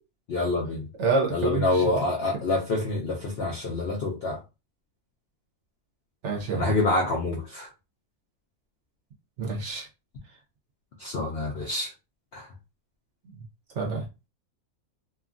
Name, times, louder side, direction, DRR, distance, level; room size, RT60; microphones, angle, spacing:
voice 1, 0.3-0.9 1.3-4.4 6.5-7.7 11.0-11.9 12.3-12.5, left 2 dB, 65° left, 0.6 m, -27 dB
voice 2, 1.0-1.8 6.2-6.6 9.4-9.9 13.2-13.3 13.7-14.1, right 4 dB, 60° right, 0.8 m, -27 dB
2.8 x 2.3 x 2.5 m
omnidirectional pair, 1.7 m